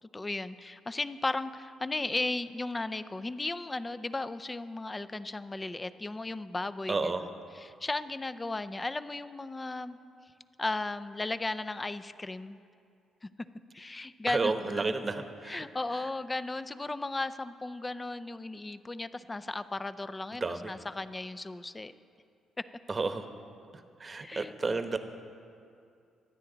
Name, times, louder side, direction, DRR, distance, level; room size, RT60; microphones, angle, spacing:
voice 1, 0.0-7.3 7.5-10.0 10.6-12.6 13.2-13.3 13.7-14.9 15.4-21.9 22.6-22.7 24.2-24.5, left 2 dB, 20° left, 13 dB, 0.5 m, -35 dB
voice 2, 6.9-7.2 14.3-15.6 20.4-20.7 22.9-23.3 24.0-25.0, right 3 dB, 30° right, 8 dB, 1.0 m, -31 dB
24.0 x 9.6 x 4.0 m, 2.5 s
cardioid pair, 90°, 0 cm